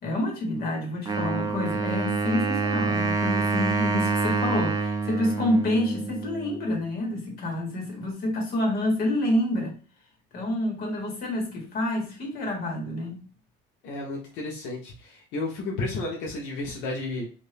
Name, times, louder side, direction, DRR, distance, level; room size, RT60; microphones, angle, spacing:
voice 1, 0.0-9.7 10.3-13.2, left 1 dB, 55° left, 1.6 m, -28 dB
Wind instrument woodwind instrument, 1.1-6.7, right 4 dB, 20° right, 0.5 m, -27 dB
voice 2, 13.8-17.3, left 2 dB, 85° left, 0.9 m, -32 dB
2.7 x 2.6 x 3.3 m
cardioid pair, 135°, 19 cm